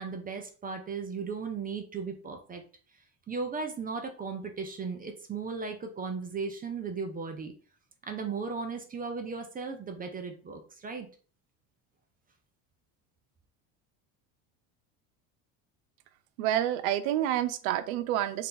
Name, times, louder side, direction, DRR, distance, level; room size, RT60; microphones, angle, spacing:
voice 1, 0.0-2.6 3.3-7.5 8.1-11.1, right 5 dB, 20° right, 5 dB, 0.6 m, -36 dB
voice 2, 16.4-18.5, right 12 dB, 85° right, 11 dB, 0.6 m, -28 dB
3.4 x 2.8 x 3.8 m, 0.40 s
supercardioid pair, 110°, 40 cm